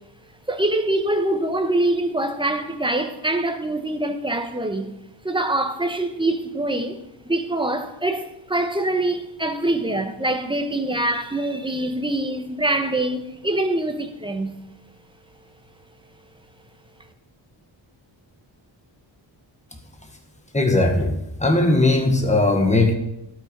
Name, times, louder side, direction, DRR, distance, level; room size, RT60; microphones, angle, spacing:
voice 1, 0.5-4.9 5.2-7.0 7.2-14.5, right 1 dB, 10° right, 1.1 m, -24 dB
voice 2, 20.5-22.9, left 2 dB, 15° left, 1.6 m, -19 dB
12.0 x 8.8 x 5.5 m
wide cardioid pair, 155°, 47 cm